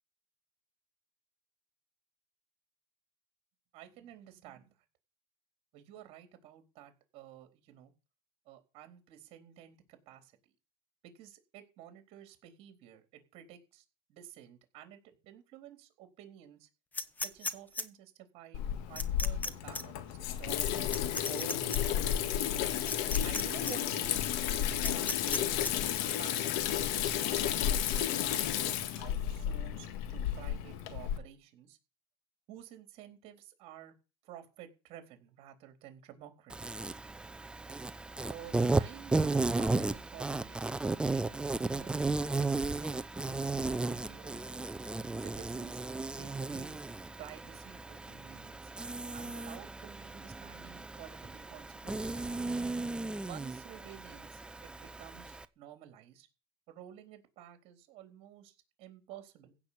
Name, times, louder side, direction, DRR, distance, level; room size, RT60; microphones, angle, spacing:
voice 1, 3.7-4.7 5.7-7.9 8.5-10.3 11.0-13.8 14.1-16.7 17.2-20.9 21.3-22.2 23.2-25.6 26.0-26.4 27.1-31.8 32.5-33.9 34.2-36.5 38.3-44.4 45.2-45.8 46.2-46.8 47.2-48.7 49.1-52.0 53.2-56.3 56.7-59.6, right 11 dB, 55° right, 7 dB, 3.9 m, -52 dB
sound 1, 16.9-17.8 19.0-19.5 19.7-19.8 20.9-21.8 22.9-23.4 23.7-23.8 24.8-25.7, left 3 dB, 15° left, 1.2 m, -35 dB
Water tap faucet / Sink (filling or washing), 18.5-31.2, left 10 dB, 75° left, 1.8 m, -32 dB
Insect, 36.5-55.4, right 3 dB, 10° right, 0.7 m, -35 dB
16.0 x 6.2 x 8.7 m, 0.32 s
supercardioid pair, 130°, 12 cm